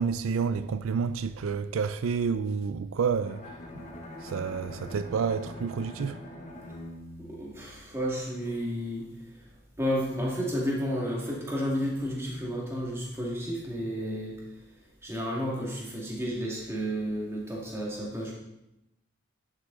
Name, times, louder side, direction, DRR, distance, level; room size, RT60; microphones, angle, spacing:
voice 1, 0.0-3.5 4.2-6.2, right 5 dB, 85° right, 0.4 m, -29 dB
Bowed string instrument, 3.2-8.3, left 1 dB, 35° left, 1.3 m, -44 dB
voice 2, 7.2-9.5 9.8-14.4 15.0-18.3, equal, 15° right, 2.0 m, -32 dB
11.0 x 6.7 x 3.8 m
head